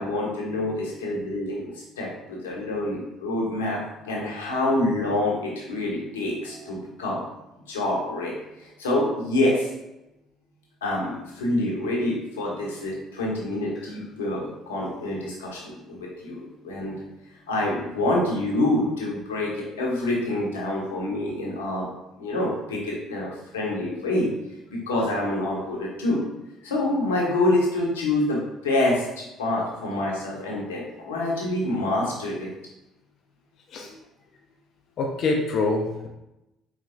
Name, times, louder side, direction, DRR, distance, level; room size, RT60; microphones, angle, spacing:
voice 1, 0.0-7.2 7.7-9.7 10.8-16.9 17.5-21.9 22.2-24.3 24.7-26.2 26.6-32.5, left 1 dB, 85° left, -3 dB, 0.9 m, -27 dB
voice 2, 35.0-36.1, left 3 dB, 55° left, 1 dB, 0.6 m, -26 dB
4.3 x 3.1 x 2.6 m, 0.93 s
hypercardioid pair, 55°, 0 cm